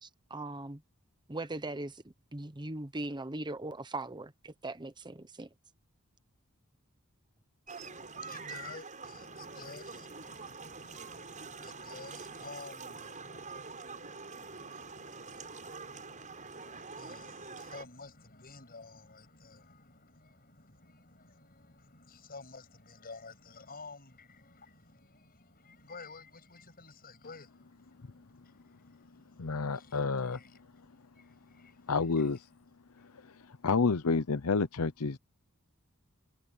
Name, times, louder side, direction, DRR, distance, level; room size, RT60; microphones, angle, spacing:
voice 1, 0.0-0.8 1.3-2.0 2.3-5.5, right 2 dB, 20° right, 0.9 m, -39 dB
sound 1, 7.7-17.8, right 4 dB, 35° right, 6.5 m, -45 dB
voice 2, 7.8-32.4 33.0-33.4, left 3 dB, 45° left, 7.5 m, -52 dB
voice 3, 29.4-30.4 31.9-32.4 33.2-33.3 33.6-35.2, left 4 dB, 90° left, 0.8 m, -29 dB
head